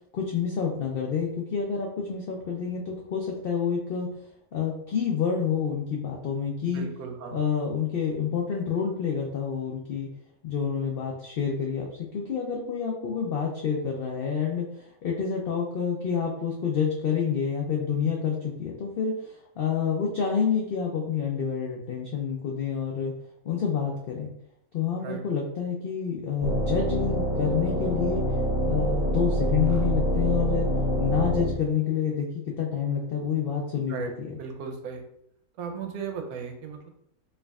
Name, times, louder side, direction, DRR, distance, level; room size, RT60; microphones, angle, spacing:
voice 1, 0.1-4.2 4.5-6.9 7.3-10.1 10.4-23.1 23.4-24.3 24.7-28.3 28.7-30.7 31.0-34.4, left 7 dB, 90° left, -1 dB, 0.5 m, -28 dB
voice 2, 6.6-7.4 25.0-25.2 33.9-34.1 34.4-35.0 35.6-36.9, right 6 dB, 85° right, 3 dB, 1.1 m, -36 dB
sound 1, 26.4-31.5, equal, 20° right, 0.6 m, -26 dB
4.5 x 2.5 x 2.3 m, 0.74 s
omnidirectional pair, 1.6 m